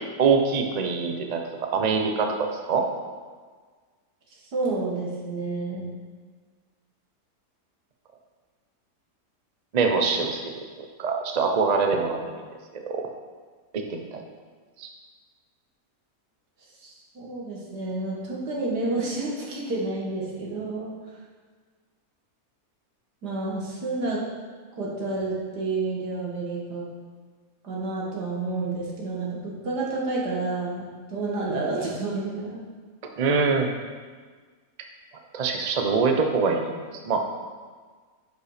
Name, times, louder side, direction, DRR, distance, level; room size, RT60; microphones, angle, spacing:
voice 1, 0.2-2.9 9.7-10.4 11.0-12.4 12.7-13.0 13.7-14.2 14.8-14.9 33.2-33.8 35.3-36.8 37.0-37.2, right 5 dB, 35° right, 3 dB, 0.7 m, -24 dB
voice 2, 4.5-5.9 16.8-20.9 23.2-24.2 24.8-26.9 27.6-32.6, right 3 dB, 90° right, -4 dB, 2.4 m, -30 dB
10.5 x 5.5 x 5.0 m, 1.5 s
omnidirectional pair, 1.7 m